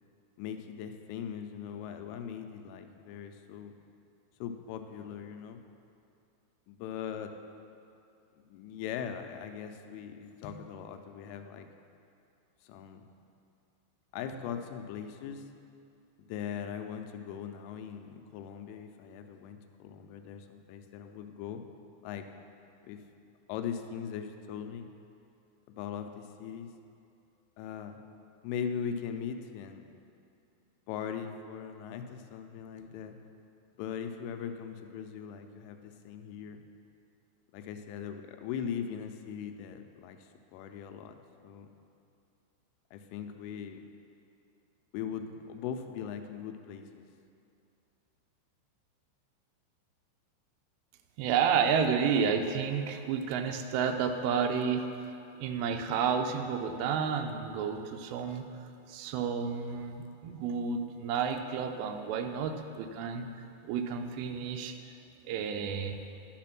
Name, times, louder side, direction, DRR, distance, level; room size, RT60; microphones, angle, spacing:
voice 1, 0.4-3.7 4.4-5.6 6.7-7.3 8.4-11.7 12.6-13.1 14.1-15.5 16.2-21.6 22.0-22.3 22.9-23.0 23.5-24.9 25.7-26.7 27.6-28.0 28.4-29.9 30.9-33.2 33.8-36.6 37.5-41.2 41.4-41.7 42.9-43.8 44.9-47.1, left 8 dB, 90° left, 6 dB, 3.2 m, -40 dB
voice 2, 51.2-54.9 55.4-63.3 63.6-64.8 65.2-66.0, right 6 dB, 90° right, 5 dB, 2.5 m, -31 dB
11.0 x 6.7 x 5.9 m, 2.5 s
omnidirectional pair, 5.6 m